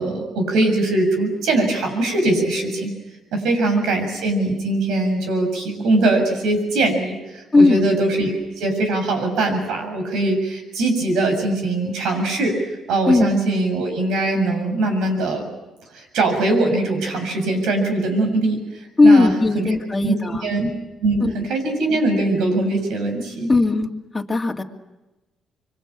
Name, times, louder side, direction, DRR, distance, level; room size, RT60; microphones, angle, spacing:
voice 1, 0.0-2.9 3.3-12.6 12.9-15.5 15.9-19.7 20.0-20.7 21.0-23.5, right 2 dB, 85° right, 5 dB, 7.1 m, -21 dB
voice 2, 7.5-7.9 13.1-13.3 19.0-20.5 21.2-21.3 23.5-23.9 24.1-24.6, left 3 dB, 20° left, 2 dB, 2.4 m, -16 dB
26.0 x 23.5 x 8.8 m, 1.1 s
cardioid pair, 90°, 0 cm